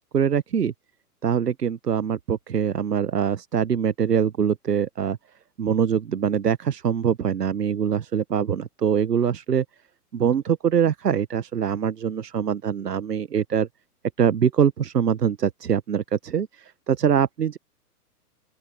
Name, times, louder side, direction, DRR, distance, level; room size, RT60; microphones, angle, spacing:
voice 1, 0.1-0.7 1.2-5.2 5.6-9.6 10.1-13.7 14.2-17.6, right 8 dB, 90° right, 1.1 m, -23 dB
open air
hypercardioid pair, 120°, 47 cm